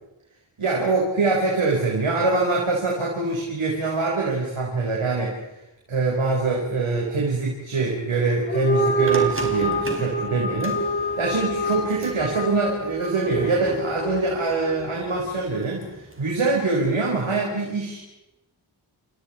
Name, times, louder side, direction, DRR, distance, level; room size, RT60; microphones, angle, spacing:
voice 1, 0.6-5.3 5.9-18.0, right 3 dB, 85° right, -2 dB, 4.9 m, -24 dB
sound 1, 8.4-15.0, right 1 dB, 25° left, 6.1 m, -26 dB
sound 2, 9.1-17.2, right 2 dB, 25° right, 4.5 m, -39 dB
30.0 x 28.5 x 4.5 m, 0.92 s
cardioid pair, 55°, 48 cm